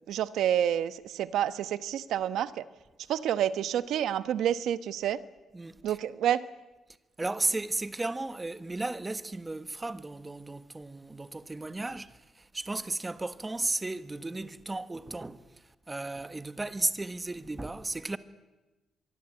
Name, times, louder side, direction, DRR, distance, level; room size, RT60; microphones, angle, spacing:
voice 1, 0.1-2.7 3.1-5.2 5.8-6.4, right 10 dB, 80° right, 1.2 m, -28 dB
voice 2, 5.5-6.0 7.2-18.2, right 2 dB, 15° right, 1.4 m, -34 dB
24.0 x 23.5 x 9.0 m
cardioid pair, 110°, 0 cm